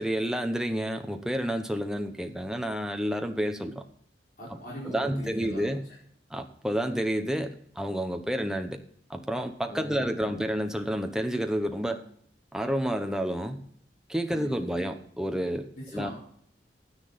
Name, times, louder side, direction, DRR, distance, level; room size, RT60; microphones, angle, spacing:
voice 1, 0.0-3.8 4.8-5.8 6.3-8.8 9.1-12.0 12.5-13.6 14.1-16.1, equal, 5° right, 5 dB, 0.9 m, -30 dB
voice 2, 4.4-5.7 9.7-10.4 14.3-14.5 15.8-16.1, equal, 55° left, -6 dB, 4.6 m, -40 dB
11.0 x 9.8 x 4.0 m, 0.64 s
head